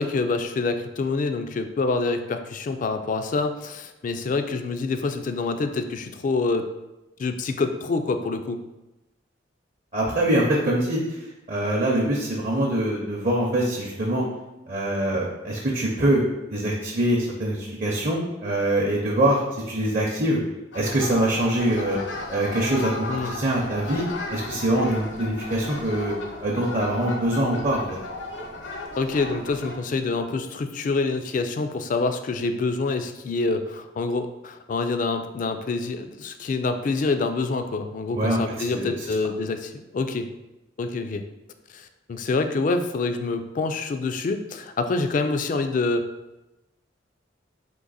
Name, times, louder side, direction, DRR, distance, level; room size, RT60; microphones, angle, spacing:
voice 1, 0.0-6.7 7.2-8.6 23.1-23.3 29.0-40.3 40.8-41.2 41.7-46.1, left 3 dB, 45° left, 8 dB, 0.3 m, -26 dB
voice 2, 9.9-14.2 14.7-16.2 16.5-20.4 20.7-22.0 22.3-26.1 26.4-27.8 38.2-39.0, right 1 dB, 40° right, -3 dB, 0.6 m, -24 dB
sound 1, 20.7-29.7, left 2 dB, 85° left, 0.8 m, -35 dB
3.8 x 2.9 x 4.0 m, 1.0 s
head